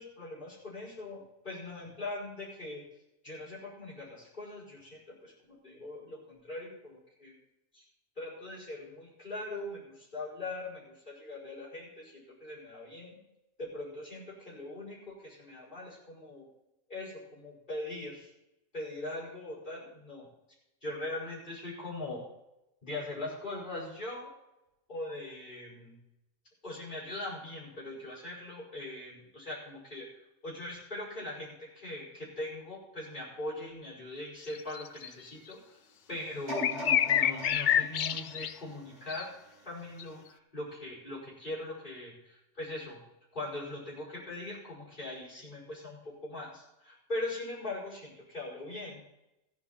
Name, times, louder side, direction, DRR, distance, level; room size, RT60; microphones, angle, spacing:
voice 1, 0.0-2.8 3.2-7.3 7.7-7.8 8.2-13.2 13.6-16.5 16.9-18.3 18.7-20.3 20.8-22.2 22.8-24.3 24.9-26.0 26.6-30.1 30.4-35.8 36.1-39.4 39.6-43.0 43.3-49.0, left 2 dB, 40° left, -7 dB, 5.3 m, -41 dB
sound 1, 34.5-35.1 35.5-35.6 36.6-38.5 39.1-39.2 40.0-40.1, left 9 dB, 60° left, 0.5 m, -27 dB
sound 2, 36.5-39.5 40.1-40.2, left 2 dB, 65° right, 4.8 m, -40 dB
15.5 x 10.0 x 4.3 m, 0.88 s
omnidirectional pair, 1.3 m